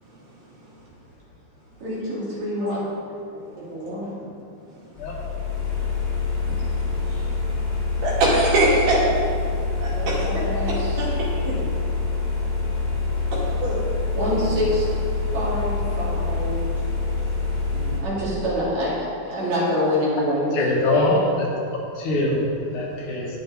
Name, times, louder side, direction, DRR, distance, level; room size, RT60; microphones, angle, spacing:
voice 1, 1.8-2.9 3.5-4.1 9.9-11.0 14.1-14.9 15.3-16.6 18.0-21.2, equal, 60° right, -7 dB, 3.8 m, -26 dB
sound 1, 5.0-18.0, left 4 dB, 30° left, 0.8 m, -26 dB
voice 2, 8.0-9.0 9.8-10.4 10.7-11.7 13.6-13.8 14.3-14.5 17.7-18.0, right 2 dB, 90° right, -6 dB, 4.0 m, -23 dB
voice 3, 20.5-21.5 22.0-23.3, left 2 dB, 70° left, -2 dB, 2.9 m, -22 dB
10.5 x 9.2 x 4.0 m, 2.5 s
omnidirectional pair, 3.6 m